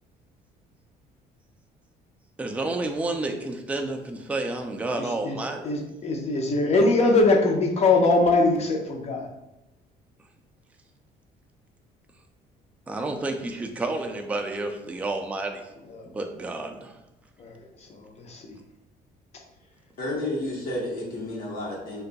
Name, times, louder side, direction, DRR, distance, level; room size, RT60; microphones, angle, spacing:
voice 1, 2.4-5.7 12.9-15.7 16.1-17.0, right 2 dB, 10° right, 3 dB, 0.3 m, -30 dB
voice 2, 5.0-5.4 5.6-9.3 15.9-16.1 17.4-17.6 17.9-18.6, left 2 dB, 40° left, 2 dB, 0.6 m, -22 dB
voice 3, 20.0-22.0, left 1 dB, 60° left, -5 dB, 0.9 m, -31 dB
2.6 x 2.2 x 3.8 m, 0.94 s
cardioid pair, 110°, 17 cm